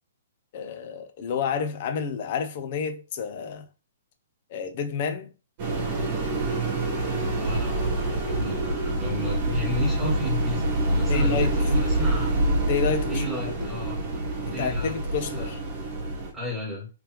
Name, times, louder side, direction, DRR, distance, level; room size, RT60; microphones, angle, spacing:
voice 1, 0.5-3.7 4.5-5.3 11.1-11.6 12.6-13.2 14.6-15.6, left 6 dB, 35° left, 0.6 m, -29 dB
sound 1, 5.6-16.3, right 1 dB, 30° right, 1.2 m, -26 dB
voice 2, 7.4-7.7 8.1-12.3 13.0-14.0 14.4-15.0 15.3-15.5 16.3-16.9, left 2 dB, 5° right, 1.8 m, -33 dB
3.3 x 3.2 x 3.0 m
hypercardioid pair, 175°, 0 cm